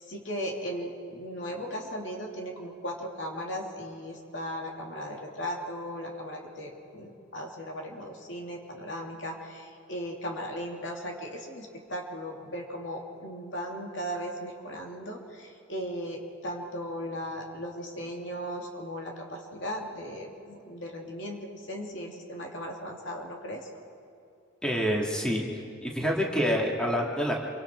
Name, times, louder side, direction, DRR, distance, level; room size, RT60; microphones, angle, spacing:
voice 1, 0.1-23.7, equal, 65° left, 0 dB, 2.9 m, -37 dB
voice 2, 24.6-25.4 25.8-27.3, equal, 5° left, -2 dB, 2.3 m, -27 dB
27.5 x 25.0 x 4.6 m, 2.5 s
head